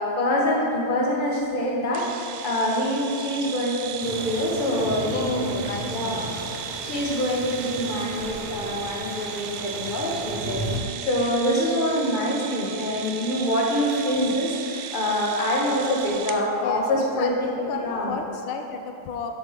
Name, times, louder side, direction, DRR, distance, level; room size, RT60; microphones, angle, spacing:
voice 1, 0.0-5.6 5.9-6.3 6.8-18.2, left 1 dB, 25° left, -3 dB, 1.4 m, -25 dB
sound 1, 1.9-16.4, right 8 dB, 85° right, 0.9 m, -36 dB
sound 2, 4.0-10.8, right 1 dB, 30° right, 1.0 m, -36 dB
voice 2, 5.1-6.5 16.5-19.3, left 5 dB, 85° left, 5 dB, 1.5 m, -33 dB
11.5 x 7.4 x 3.7 m, 2.6 s
omnidirectional pair, 2.3 m